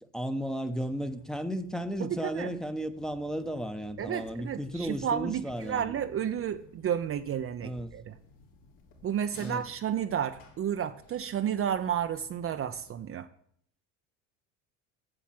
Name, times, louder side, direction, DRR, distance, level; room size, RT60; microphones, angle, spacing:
voice 1, 0.1-6.0 7.6-7.9 9.3-9.6, equal, ahead, 1.0 m, -34 dB
sound 1, 0.7-13.1, left 3 dB, 70° left, 3.3 m, -56 dB
voice 2, 2.0-2.5 4.0-8.1 9.0-13.3, right 9 dB, 35° right, 0.7 m, -32 dB
8.7 x 7.1 x 7.6 m
hypercardioid pair, 75°, 38 cm